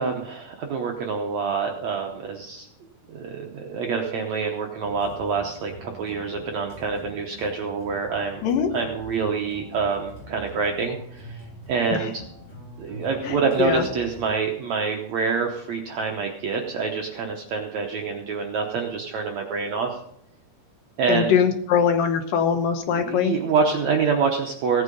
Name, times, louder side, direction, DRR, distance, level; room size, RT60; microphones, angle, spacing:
voice 1, 0.0-2.7 3.1-8.4 8.7-12.2 12.8-20.0 21.0-21.3 22.9-24.8, right 5 dB, 70° right, 2 dB, 1.7 m, -26 dB
sound 1, 4.8-14.3, right 1 dB, 40° left, 6.4 m, -44 dB
voice 2, 13.2-13.8 21.1-23.3, left 7 dB, 70° left, 6 dB, 2.5 m, -22 dB
17.0 x 8.4 x 5.3 m, 0.73 s
omnidirectional pair, 4.4 m